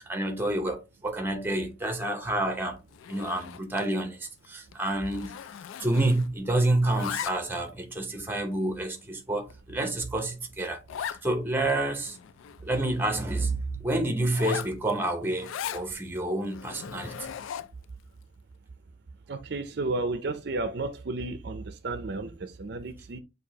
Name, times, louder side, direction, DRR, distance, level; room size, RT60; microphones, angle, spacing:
voice 1, 0.0-2.8 3.1-5.3 5.8-10.8 11.2-12.2 12.6-17.3, right 1 dB, 10° right, 0.7 m, -29 dB
Zipper (clothing), 2.9-3.9 4.2-4.5 4.7-6.4 6.7-7.7 8.3-8.4 9.0-9.1 9.5-9.6 9.8-9.9 10.2-10.3 10.9-11.2 11.7-11.8 12.0-13.3 14.2-15.9 16.4-17.8, left 9 dB, 80° left, 0.3 m, -38 dB
voice 2, 19.3-23.2, right 2 dB, 55° right, 0.5 m, -32 dB
6.4 x 2.7 x 2.8 m
head